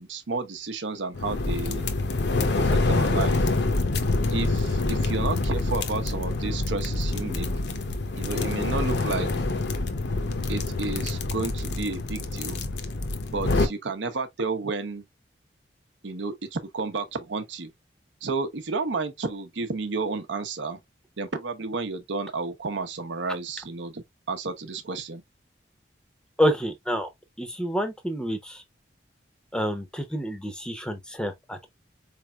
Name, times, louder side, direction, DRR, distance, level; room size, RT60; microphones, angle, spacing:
voice 1, 0.0-1.9 2.6-3.4 4.3-7.5 8.2-9.3 10.5-12.6 13.3-15.0 16.0-17.7 18.2-20.8 21.2-25.2, right 3 dB, 85° right, 0.7 m, -31 dB
sound 1, 1.2-13.7, left 2 dB, 70° left, 0.7 m, -26 dB
voice 2, 26.4-27.1 27.4-28.6 29.5-31.7, equal, 5° left, 0.6 m, -28 dB
4.3 x 3.3 x 2.3 m
head